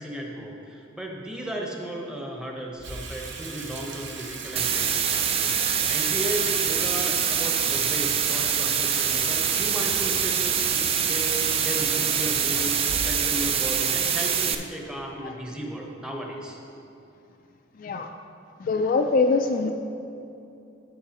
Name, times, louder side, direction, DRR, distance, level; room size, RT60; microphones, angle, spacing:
voice 1, 0.0-16.6, right 1 dB, 5° right, -1 dB, 0.8 m, -35 dB
Water tap faucet / Sink (filling or washing), 2.8-15.2, right 4 dB, 60° right, 0.8 m, -38 dB
sound 1, 4.6-14.6, right 8 dB, 30° right, 0.3 m, -24 dB
voice 2, 17.8-18.1 18.6-19.7, left 3 dB, 45° left, 5 dB, 0.3 m, -24 dB
14.0 x 5.6 x 2.9 m, 2.7 s
head